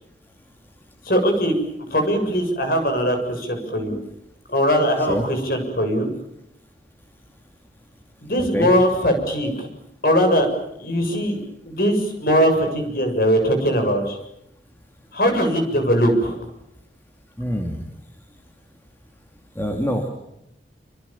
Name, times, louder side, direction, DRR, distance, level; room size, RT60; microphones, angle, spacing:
voice 1, 1.1-1.6 1.9-4.0 4.5-6.1 8.2-9.7 10.0-10.5 10.8-11.4 11.6-14.2 15.1-16.4, equal, 50° left, 5 dB, 7.2 m, -20 dB
voice 2, 17.4-17.8 19.6-20.1, equal, 10° left, 3 dB, 2.8 m, -25 dB
28.0 x 27.0 x 7.3 m, 0.82 s
head